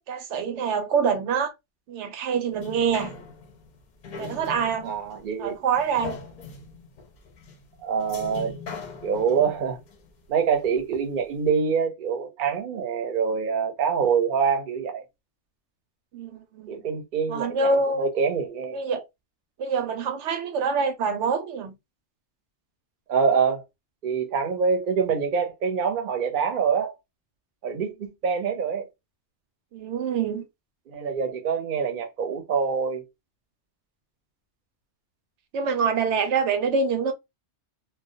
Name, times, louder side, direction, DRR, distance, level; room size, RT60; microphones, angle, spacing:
voice 1, 0.0-1.5 1.9-3.2 4.2-4.9 5.4-6.2 16.1-16.8 17.3-18.1 18.7-19.1 19.6-21.7 29.7-30.5 35.5-37.1, right 5 dB, 80° right, 0.9 m, -25 dB
sound 1, 2.5-11.0 11.5-11.6, left 4 dB, 50° left, 0.6 m, -41 dB
voice 2, 4.8-5.6 7.8-8.6 9.0-9.8 10.3-15.0 16.7-18.8 23.1-23.6 24.0-26.9 27.6-28.8 30.9-33.0, right 6 dB, 55° right, 0.7 m, -25 dB
2.2 x 2.1 x 2.6 m
omnidirectional pair, 1.2 m